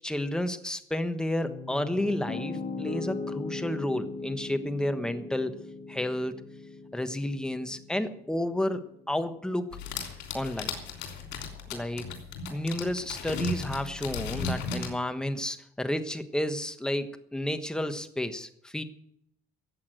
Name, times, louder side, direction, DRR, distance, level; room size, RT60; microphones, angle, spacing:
voice 1, 0.0-5.5 5.9-6.3 6.9-8.8 9.1-9.7 10.3-10.7 11.7-12.1 12.5-18.8, left 1 dB, 5° left, 9 dB, 1.3 m, -31 dB
Piano, 1.4-9.5, left 3 dB, 50° left, 3.2 m, -39 dB
sound 1, 9.7-14.9, left 4 dB, 85° left, 3.3 m, -36 dB
14.5 x 8.5 x 9.2 m, 0.73 s
cardioid pair, 110°, 17 cm